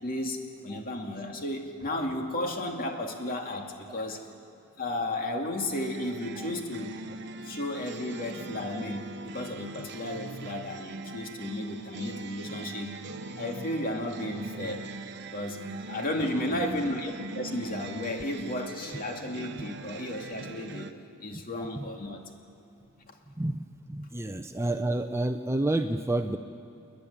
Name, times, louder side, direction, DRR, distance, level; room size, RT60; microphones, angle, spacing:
voice 1, 0.0-4.3 4.8-7.0 7.4-12.9 13.4-14.9 15.2-22.3, left 1 dB, 40° left, 2 dB, 2.3 m, -34 dB
sound 1, 5.7-20.9, right 2 dB, 55° right, 1.0 m, -41 dB
voice 2, 16.2-16.8 21.8-21.9 23.4-23.6 23.9-26.4, right 2 dB, 10° right, 6 dB, 0.6 m, -30 dB
29.5 x 10.5 x 9.9 m, 2.9 s
head